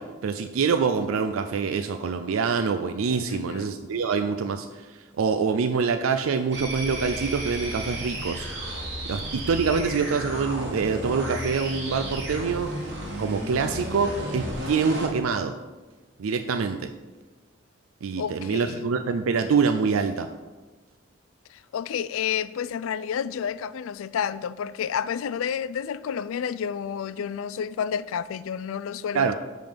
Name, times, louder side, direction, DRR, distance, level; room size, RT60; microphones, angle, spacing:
voice 1, 0.0-8.5 9.1-12.7 13.2-15.5 16.2-16.9 18.0-20.3 29.1-29.3, right 5 dB, 85° right, 0.4 m, -25 dB
voice 2, 3.3-3.8 18.2-18.9 21.5-29.3, left 8 dB, 80° left, 0.3 m, -30 dB
sound 1, 6.5-15.2, right 1 dB, 55° right, 1.8 m, -33 dB
10.5 x 3.8 x 5.2 m
head